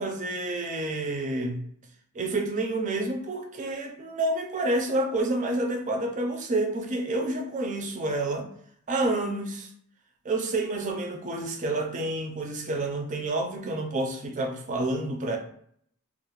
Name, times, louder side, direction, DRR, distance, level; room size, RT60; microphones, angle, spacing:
voice 1, 0.0-1.6 2.1-8.5 8.9-9.7 10.2-15.4, right 2 dB, 35° right, 3 dB, 0.4 m, -29 dB
2.4 x 2.0 x 3.0 m, 0.65 s
head